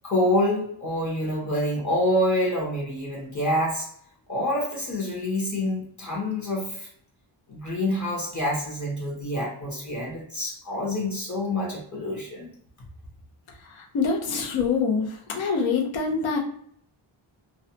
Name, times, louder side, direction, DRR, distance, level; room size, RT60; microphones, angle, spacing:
voice 1, 0.0-3.9 4.3-6.9 7.5-12.5, left 1 dB, 35° left, -4 dB, 0.9 m, -27 dB
voice 2, 13.9-15.1 15.3-16.4, left 5 dB, 70° left, 0 dB, 0.7 m, -24 dB
2.4 x 2.1 x 2.7 m, 0.65 s
wide cardioid pair, 140°, 48 cm